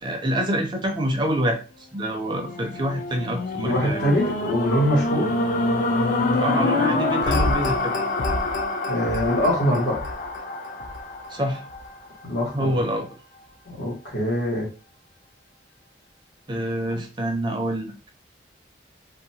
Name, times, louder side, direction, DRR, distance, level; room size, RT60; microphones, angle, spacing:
voice 1, 0.0-4.1 6.4-8.0 11.3-11.6 12.5-13.1 16.5-18.1, right 1 dB, 25° right, 4 dB, 0.4 m, -26 dB
sound 1, 2.2-12.5 13.1-13.2, left 2 dB, 45° left, 0.3 m, -26 dB
voice 2, 3.6-5.3 8.9-10.0 12.2-12.8 13.7-14.7, equal, 80° left, -4 dB, 1.4 m, -23 dB
2.7 x 2.3 x 2.7 m, 0.32 s
head